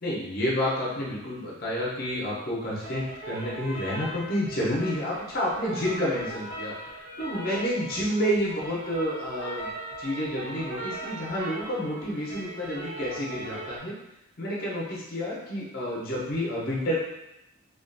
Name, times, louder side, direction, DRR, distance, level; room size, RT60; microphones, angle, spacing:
voice 1, 0.0-9.7 10.0-13.9 14.4-17.0, equal, 45° left, -5 dB, 0.6 m, -29 dB
sound 1, 2.8-13.8, right 1 dB, 55° right, 0.6 m, -39 dB
2.3 x 2.3 x 2.5 m, 0.88 s
head